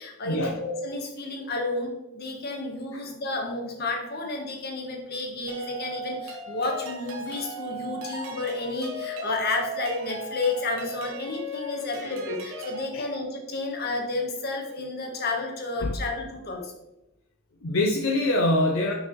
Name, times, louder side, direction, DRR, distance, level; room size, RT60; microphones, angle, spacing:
voice 1, 0.0-16.7, left 3 dB, 50° left, 2 dB, 1.1 m, -31 dB
sound 1, 5.5-12.9, equal, 70° right, 1.0 m, -36 dB
voice 2, 17.6-18.9, left 1 dB, 65° left, 1 dB, 0.6 m, -24 dB
5.8 x 5.5 x 3.0 m, 0.93 s
head